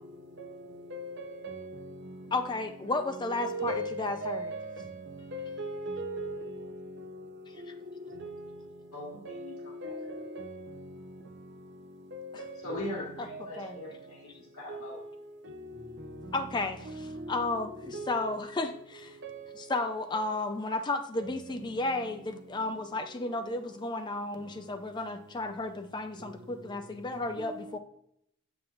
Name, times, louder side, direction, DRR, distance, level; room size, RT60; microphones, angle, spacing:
voice 1, 2.3-4.5 13.2-13.3 13.6-13.8 16.3-16.8 17.3-17.7 18.1-18.7 19.7-27.8, left 2 dB, 20° left, 0.3 m, -33 dB
voice 2, 3.4-4.9 5.3-6.3 9.3-9.4 9.8-10.5 17.9-18.1 19.2-19.4, right 1 dB, 55° right, 0.6 m, -36 dB
voice 3, 8.9-9.9 12.6-14.3 14.5-15.0, left 1 dB, 85° left, 1.9 m, -40 dB
7.5 x 6.0 x 2.4 m
head